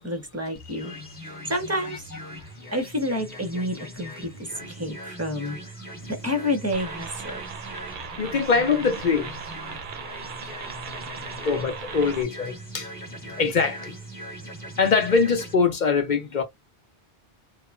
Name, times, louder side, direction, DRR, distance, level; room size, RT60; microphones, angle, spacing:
voice 1, 0.0-0.9 1.2-2.0 2.4-5.7 6.1-7.4, left 1 dB, 15° right, 0.6 m, -29 dB
sound 1, 0.5-15.5, equal, 10° left, 1.0 m, -41 dB
voice 2, 0.7-1.0 4.6-4.7 8.2-9.3 11.4-12.9 13.2-13.9 14.8-16.4, left 5 dB, 50° left, 0.7 m, -23 dB
sound 2, 6.7-12.2, right 6 dB, 55° right, 0.7 m, -38 dB
3.1 x 2.2 x 2.3 m
omnidirectional pair, 1.1 m